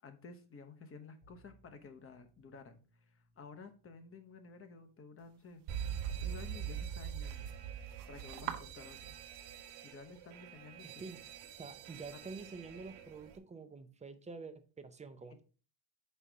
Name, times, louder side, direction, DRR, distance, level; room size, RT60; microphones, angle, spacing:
voice 1, 0.0-5.6 6.2-7.5 8.1-9.2 9.8-10.9, left 4 dB, 30° left, 1.0 m, -53 dB
Bowed string instrument, 1.2-6.3, right 1 dB, 50° left, 2.8 m, -70 dB
sound 1, 5.2-10.3, right 11 dB, 55° right, 0.9 m, -50 dB
Alarm, 5.7-13.4, right 9 dB, 80° right, 1.3 m, -44 dB
voice 2, 10.8-11.3 11.6-15.4, right 4 dB, 15° right, 0.6 m, -48 dB
5.7 x 4.0 x 4.7 m
cardioid pair, 120°, 47 cm